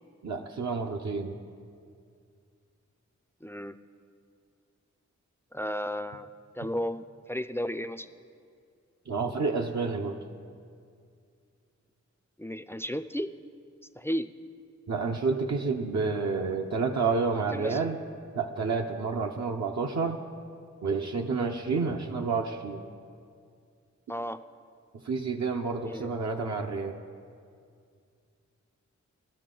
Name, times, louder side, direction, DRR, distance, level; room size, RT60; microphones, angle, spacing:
voice 1, 0.2-1.4 9.1-10.2 14.9-18.0 18.3-20.2 20.8-22.8 24.9-27.0, right 4 dB, 65° right, 2 dB, 0.7 m, -29 dB
voice 2, 3.4-3.8 5.5-6.3 6.6-8.1 12.4-13.3 14.0-14.4 17.5-17.8 24.1-24.4 25.8-26.1, equal, 10° left, 10 dB, 0.4 m, -33 dB
17.0 x 12.0 x 3.8 m, 2.3 s
cardioid pair, 55°, 30 cm